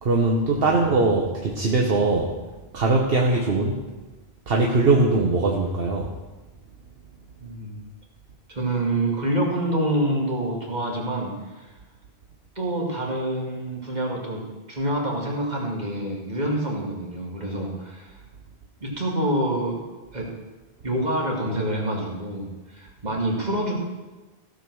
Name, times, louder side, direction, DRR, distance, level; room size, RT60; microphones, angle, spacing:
voice 1, 0.0-2.3 2.7-3.8 4.5-6.1, right 3 dB, 65° right, 0 dB, 1.3 m, -21 dB
voice 2, 7.4-7.8 8.5-11.7 12.6-18.1 18.8-19.8 20.1-20.3 20.8-23.7, right 1 dB, 45° right, -2 dB, 2.5 m, -27 dB
16.0 x 5.3 x 6.2 m, 1.2 s
omnidirectional pair, 1.0 m